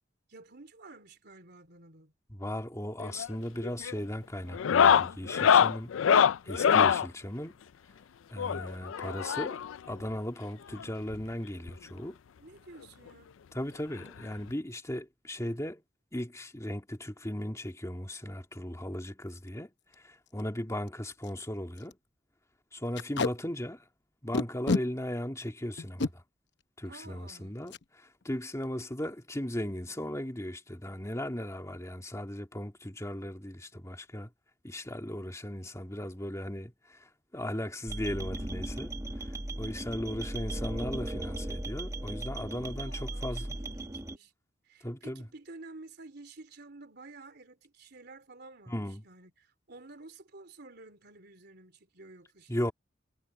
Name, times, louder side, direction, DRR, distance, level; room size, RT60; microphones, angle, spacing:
voice 1, 0.3-2.1 12.4-13.3 26.8-27.6 42.5-44.3 44.6-52.7, right 2 dB, 55° right, 3.6 m, -51 dB
voice 2, 2.3-5.9 6.4-7.6 8.3-9.6 9.9-12.2 13.5-15.8 16.1-22.0 22.7-23.9 24.2-26.2 26.8-34.3 34.6-43.5 44.8-45.3 48.7-49.0 52.5-52.7, left 1 dB, 15° left, 2.5 m, -37 dB
sound 1, 3.0-3.3 3.6-4.0 4.5-7.1 8.4-9.8 10.8-10.9 11.1-11.2 11.7-11.8 13.1-13.2 14.5-14.6, left 7 dB, 85° left, 0.4 m, -24 dB
Packing tape duct tape, 19.3-19.5 19.9-20.0 20.3-20.4 20.9-21.0 21.2-21.4 21.8-21.9 22.9-23.3 24.3-24.8 25.8-26.1 27.7-27.8 28.2-28.4 28.6-29.0, left 3 dB, 65° left, 0.8 m, -30 dB
sound 2, 37.9-44.2, right 1 dB, 15° right, 1.4 m, -37 dB
head